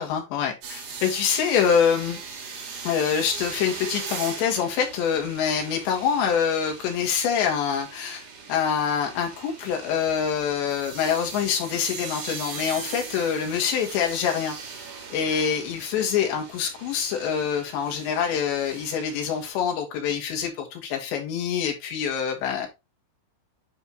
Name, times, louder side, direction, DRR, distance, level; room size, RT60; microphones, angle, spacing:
voice 1, 0.0-2.2 2.8-14.6 15.1-22.7, left 7 dB, 85° left, 2 dB, 4.0 m, -25 dB
sound 1, 0.6-19.5, right 5 dB, 50° right, 2.2 m, -39 dB
9.3 x 5.4 x 3.0 m, 0.23 s
omnidirectional pair, 4.9 m